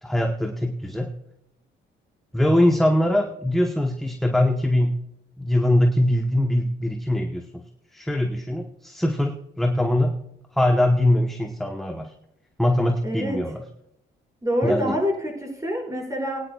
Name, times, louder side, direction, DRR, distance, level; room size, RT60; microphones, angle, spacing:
voice 1, 0.0-1.1 2.3-5.0 5.4-7.6 7.9-10.2 10.5-12.1 12.6-13.6 14.6-14.9, left 1 dB, ahead, 2 dB, 1.1 m, -22 dB
voice 2, 13.0-13.4 14.4-16.4, equal, 15° right, -1 dB, 5.3 m, -26 dB
21.0 x 10.0 x 2.4 m, 0.79 s
cardioid pair, 90°, 20 cm